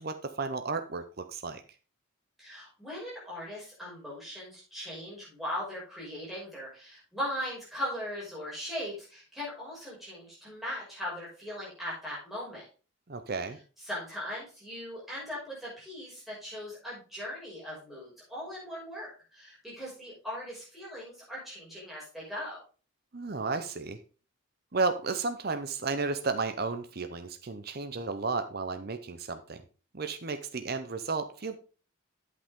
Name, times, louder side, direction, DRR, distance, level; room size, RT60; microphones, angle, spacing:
voice 1, 0.0-1.6 13.1-13.6 23.1-24.0 24.7-29.6 29.9-31.6, right 4 dB, 45° right, 8 dB, 0.7 m, -33 dB
voice 2, 2.4-12.6 13.9-22.6, equal, ahead, -6 dB, 5.8 m, -39 dB
8.7 x 8.0 x 3.6 m, 0.35 s
head